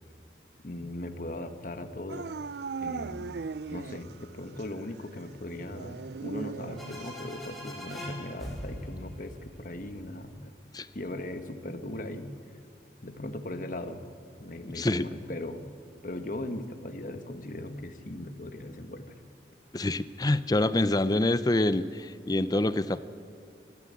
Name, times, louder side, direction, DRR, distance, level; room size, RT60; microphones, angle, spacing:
voice 1, 0.6-2.4 2.8-3.4 3.7-10.5 10.9-12.3 13.0-14.1 14.4-15.6 16.0-19.2, left 1 dB, 50° left, 7 dB, 1.6 m, -38 dB
Dog / Siren, 2.1-4.3 4.6-4.7 5.7-7.2, right 5 dB, 65° right, 0.5 m, -38 dB
sound 1, 6.7-10.4, equal, ahead, 4.5 m, -42 dB
voice 2, 14.7-15.1 19.7-23.0, left 2 dB, 20° left, 14 dB, 0.6 m, -26 dB
29.5 x 13.0 x 8.4 m, 2.5 s
head